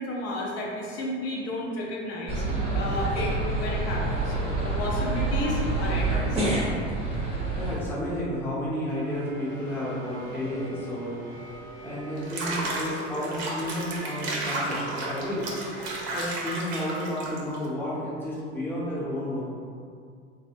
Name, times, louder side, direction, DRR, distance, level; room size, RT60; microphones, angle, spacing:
voice 1, 0.0-2.4 2.7-3.3 3.6-4.3 4.6-6.5, left 1 dB, 45° left, -2 dB, 0.7 m, -32 dB
sound 1, 2.3-7.8, right 2 dB, 15° right, 0.7 m, -27 dB
voice 2, 7.5-11.1 11.8-15.5 16.1-19.4, equal, 5° left, -9 dB, 0.9 m, -31 dB
sound 2, 8.9-16.2, right 2 dB, 85° right, 0.8 m, -44 dB
Water / Bathtub (filling or washing), 12.2-17.7, right 2 dB, 50° right, 0.7 m, -33 dB
3.3 x 2.1 x 2.6 m, 2.3 s
hypercardioid pair, 85°, 35 cm